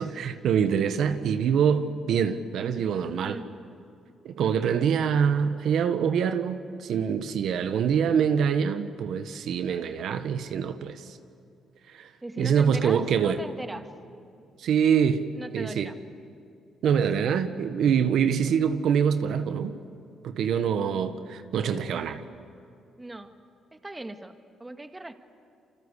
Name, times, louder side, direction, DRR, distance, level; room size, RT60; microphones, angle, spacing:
voice 1, 0.0-3.4 4.2-11.2 11.9-12.1 12.4-13.4 14.6-15.3 15.5-15.9 16.8-19.7 20.2-22.2, right 7 dB, 75° right, 1.4 m, -25 dB
voice 2, 12.2-13.9 15.3-16.0 23.0-23.3 23.7-25.1, right 2 dB, 15° right, 1.8 m, -38 dB
28.5 x 25.0 x 8.3 m
cardioid pair, 90°, 0 cm